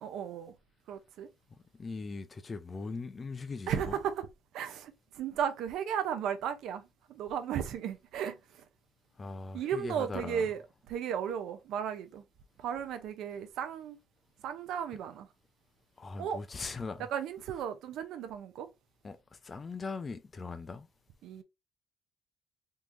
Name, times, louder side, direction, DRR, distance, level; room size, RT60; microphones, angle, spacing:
voice 1, 0.0-0.5 0.9-1.3 3.7-4.3 4.5-6.8 7.1-8.4 9.5-10.6 10.9-12.2 12.6-14.0 14.4-15.3 16.2-16.4 17.1-18.7 21.2-21.4, right 8 dB, 65° right, 0.5 m, -35 dB
voice 2, 1.8-4.0 9.2-10.5 16.0-17.1 19.0-20.9, left 4 dB, 20° left, 0.4 m, -40 dB
3.5 x 3.0 x 2.5 m
cardioid pair, 165°, 0 cm